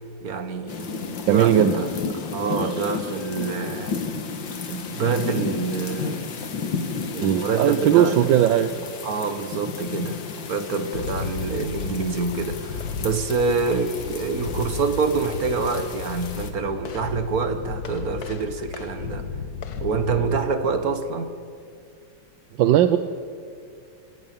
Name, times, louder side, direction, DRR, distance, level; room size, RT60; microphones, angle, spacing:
voice 1, 0.2-1.9 2.3-4.2 4.7-6.4 7.1-8.3 9.0-19.3 19.8-21.3, right 4 dB, 55° right, 1.8 m, -26 dB
sound 1, 0.7-16.5, left 5 dB, 75° left, 2.3 m, -33 dB
voice 2, 1.3-1.8 7.2-8.7 22.6-23.0, right 11 dB, 80° right, 1.5 m, -18 dB
sound 2, 10.9-20.4, left 6 dB, 55° left, 1.7 m, -34 dB
22.5 x 18.5 x 8.9 m
omnidirectional pair, 2.0 m